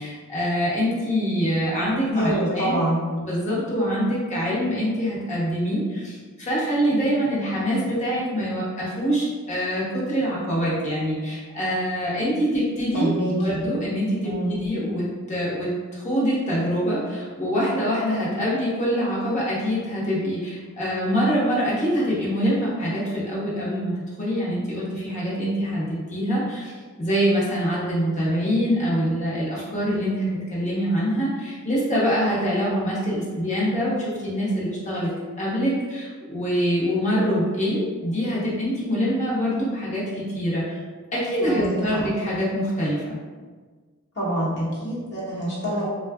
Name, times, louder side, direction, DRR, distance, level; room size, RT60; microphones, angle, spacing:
voice 1, 0.0-2.7 3.2-13.1 13.4-26.7 27.0-35.1 35.4-40.8 41.1-43.2, equal, 35° left, -7 dB, 0.9 m, -25 dB
voice 2, 2.1-3.0 12.9-13.6 14.2-14.6 41.4-42.0 44.2-45.9, right 1 dB, 55° left, -7 dB, 1.1 m, -26 dB
3.7 x 2.3 x 2.3 m, 1.5 s
head